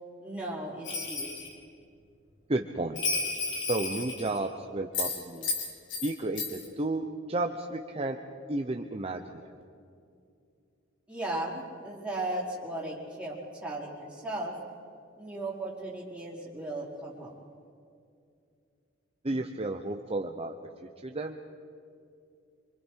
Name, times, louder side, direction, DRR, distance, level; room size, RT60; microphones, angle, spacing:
voice 1, 0.2-1.5 11.1-14.5 15.1-17.3, right 1 dB, 5° right, -5 dB, 4.7 m, -36 dB
Bell, 0.8-1.5 3.0-4.5 4.9-6.1 6.4-6.7, left 4 dB, 60° left, 3.9 m, -32 dB
voice 2, 2.5-3.0 3.7-5.5 6.0-8.2 8.5-9.5 19.2-20.5 21.0-21.4, right 2 dB, 30° right, 4 dB, 0.9 m, -32 dB
26.5 x 26.0 x 4.7 m, 2.4 s
head